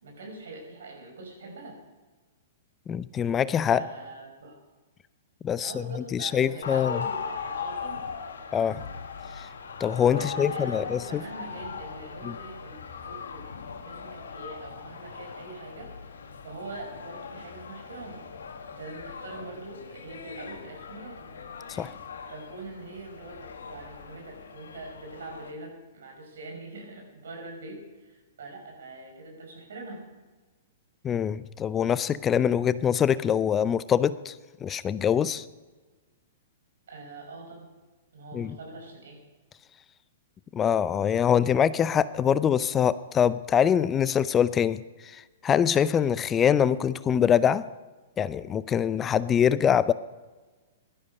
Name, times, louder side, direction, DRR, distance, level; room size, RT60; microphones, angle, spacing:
voice 1, 0.0-1.8 3.7-4.6 5.6-8.1 10.1-15.9 16.4-18.2 18.7-21.3 22.3-30.1 36.9-37.7 38.1-39.2, right 2 dB, 70° right, 2 dB, 5.5 m, -43 dB
voice 2, 2.9-3.8 5.4-7.0 8.5-8.8 9.4-9.5 9.8-11.2 12.2-12.3 21.7-21.9 31.0-34.3 34.6-35.5 38.3-38.6 40.5-47.6 48.2-49.9, left 8 dB, 20° left, 16 dB, 0.5 m, -24 dB
sound 1, 6.6-25.5, left 6 dB, 75° left, 1.6 m, -39 dB
17.0 x 12.5 x 5.3 m, 1.3 s
hypercardioid pair, 115°, 0 cm